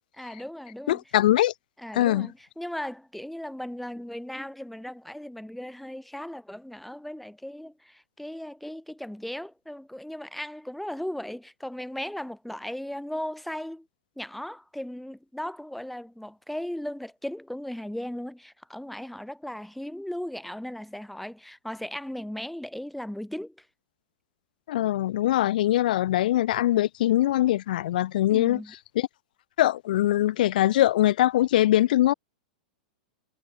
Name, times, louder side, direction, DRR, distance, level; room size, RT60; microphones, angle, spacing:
voice 1, 0.2-1.0 1.8-13.9 14.1-23.7 28.3-28.7, left 1 dB, ahead, 3.5 m, -37 dB
voice 2, 0.9-1.5 1.9-2.3 24.7-28.6 29.0-29.1 29.6-32.1, left 14 dB, 65° left, 2.3 m, -22 dB
hypercardioid pair, 105°, 5 cm